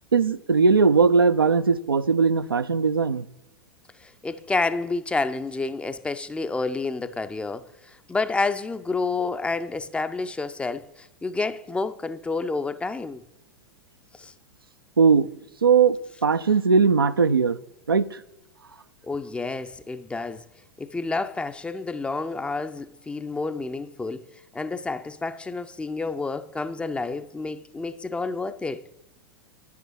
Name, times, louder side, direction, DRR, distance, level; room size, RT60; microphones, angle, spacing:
voice 1, 0.1-3.2 15.0-15.3 15.6-17.6 17.9-18.2, right 5 dB, 85° right, 0.4 m, -19 dB
voice 2, 4.0-13.2 14.2-14.3 19.0-20.4 20.8-24.3 24.5-28.8, left 3 dB, 10° left, 0.4 m, -29 dB
10.0 x 8.1 x 4.5 m
figure-of-eight pair, 90°, 12 cm